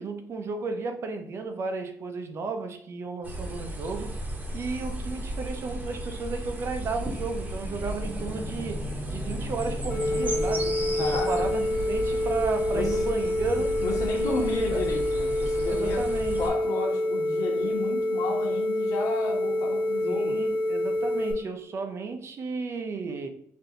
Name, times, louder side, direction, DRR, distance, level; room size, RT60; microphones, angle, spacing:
voice 1, 0.0-4.2 4.5-10.7 11.0-13.8 14.1-14.8 15.7-16.4 20.0-23.3, right 4 dB, 50° right, 0.5 m, -33 dB
sound 1, 3.2-16.5, right 1 dB, 25° right, 0.9 m, -35 dB
sound 2, 7.6-11.9, left 2 dB, 50° left, 1.3 m, -39 dB
sound 3, 9.9-21.3, left 1 dB, 35° left, 1.2 m, -27 dB
voice 2, 11.0-11.5 12.7-13.0 13.6-16.1 16.4-20.4, left 4 dB, 75° left, 1.3 m, -33 dB
4.1 x 2.7 x 3.8 m
cardioid pair, 145°, 6 cm